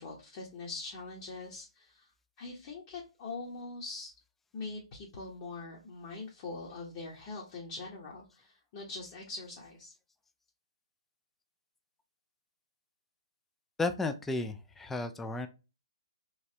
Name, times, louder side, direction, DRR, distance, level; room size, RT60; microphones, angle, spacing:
voice 1, 0.0-2.1 2.4-4.1 4.5-9.9, left 3 dB, 40° left, -3 dB, 0.9 m, -43 dB
voice 2, 13.8-15.5, left 3 dB, 5° left, 8 dB, 0.3 m, -33 dB
3.2 x 3.1 x 2.7 m, 0.30 s
figure-of-eight pair, 130°, 3 cm